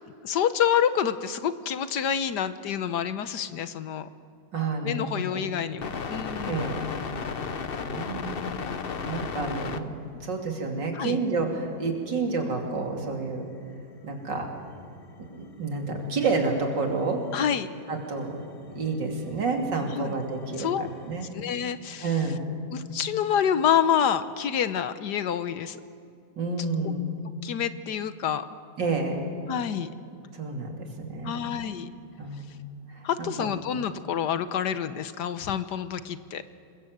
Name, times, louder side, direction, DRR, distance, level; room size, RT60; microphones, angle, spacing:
voice 1, 0.2-4.1 4.8-6.7 10.9-11.2 17.3-17.7 19.9-20.1 20.6-20.9 21.3-22.1 22.7-25.8 27.4-28.4 29.5-29.9 31.2-31.9 33.0-36.4, left 8 dB, 70° left, 12 dB, 1.4 m, -27 dB
voice 2, 4.5-5.4 6.5-6.9 7.8-8.5 9.1-10.0 10.2-13.5 14.0-14.5 15.3-17.3 17.9-18.4 18.8-21.3 22.0-22.4 26.4-27.0 28.8-29.3 30.3-31.5 32.2-32.5 32.9-33.5, right 3 dB, 70° right, 2 dB, 3.5 m, -29 dB
sound 1, 5.8-9.8 10.9-11.0 11.8-13.8 14.2-21.3, left 5 dB, 40° left, 0.9 m, -38 dB
27.5 x 22.0 x 8.0 m, 2.4 s
omnidirectional pair, 2.0 m